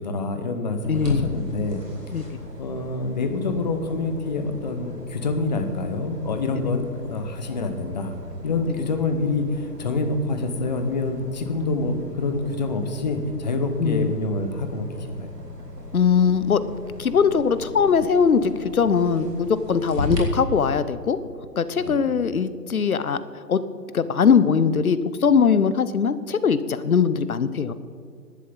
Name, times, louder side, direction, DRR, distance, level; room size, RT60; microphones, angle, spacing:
voice 1, 0.0-2.1 2.6-8.1 8.4-15.3 21.8-22.1, left 3 dB, 25° left, 7 dB, 1.0 m, -27 dB
sound 1, 0.8-20.2, left 1 dB, 75° right, 3.7 m, -37 dB
voice 2, 0.9-1.2 2.1-2.2 6.6-6.8 8.8-8.9 13.8-14.1 15.9-16.6 17.0-21.2 21.6-23.2 23.5-23.6 23.9-27.7, left 6 dB, 60° left, 14 dB, 0.8 m, -21 dB
15.0 x 11.5 x 4.0 m, 2.4 s
figure-of-eight pair, 140°, 49 cm